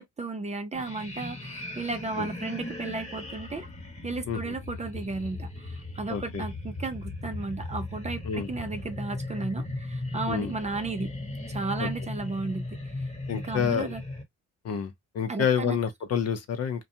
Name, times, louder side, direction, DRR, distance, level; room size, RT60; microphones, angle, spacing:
voice 1, 0.0-3.7 4.0-11.1 11.5-12.6 13.0-14.0 15.3-15.8, right 3 dB, 25° right, 0.5 m, -34 dB
sound 1, 0.7-14.2, left 2 dB, 25° left, 1.1 m, -37 dB
voice 2, 6.1-6.4 8.2-8.5 10.3-10.5 11.8-11.9 13.3-13.9 14.6-16.9, left 7 dB, 55° left, 0.7 m, -28 dB
2.4 x 2.2 x 2.6 m
cardioid pair, 90°, 30 cm